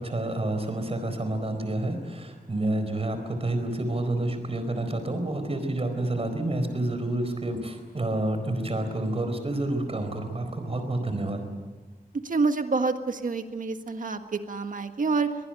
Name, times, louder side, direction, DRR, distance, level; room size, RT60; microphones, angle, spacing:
voice 1, 0.0-11.4, right 1 dB, 40° right, 7 dB, 4.4 m, -29 dB
voice 2, 12.2-15.3, right 4 dB, 60° right, 7 dB, 1.7 m, -27 dB
23.5 x 19.5 x 9.1 m, 1.4 s
wide cardioid pair, 110°, 16 cm